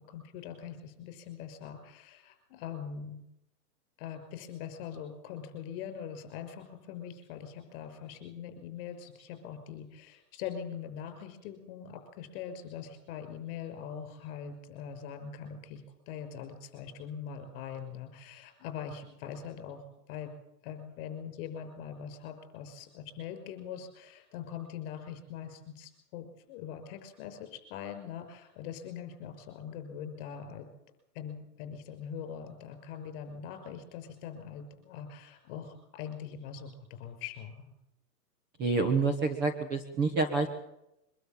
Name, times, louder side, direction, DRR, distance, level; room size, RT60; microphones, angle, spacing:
voice 1, 0.1-3.2 4.0-20.3 20.6-30.7 31.1-37.7, left 8 dB, 30° left, 8 dB, 5.9 m, -42 dB
voice 2, 38.6-40.5, right 3 dB, 20° right, 5 dB, 1.5 m, -28 dB
24.0 x 12.5 x 9.0 m, 0.86 s
hypercardioid pair, 165°, 49 cm